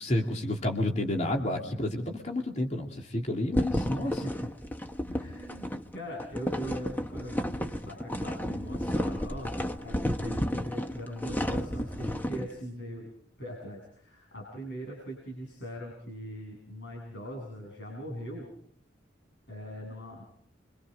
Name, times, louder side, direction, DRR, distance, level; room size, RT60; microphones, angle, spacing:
voice 1, 0.0-4.2, left 1 dB, 40° left, 1 dB, 2.9 m, -30 dB
sound 1, 3.5-12.5, equal, 10° left, 1.1 m, -32 dB
voice 2, 4.0-4.5 5.1-13.1 13.4-18.5 19.5-20.2, equal, 65° left, -1 dB, 7.3 m, -41 dB
28.5 x 25.0 x 5.1 m, 0.65 s
head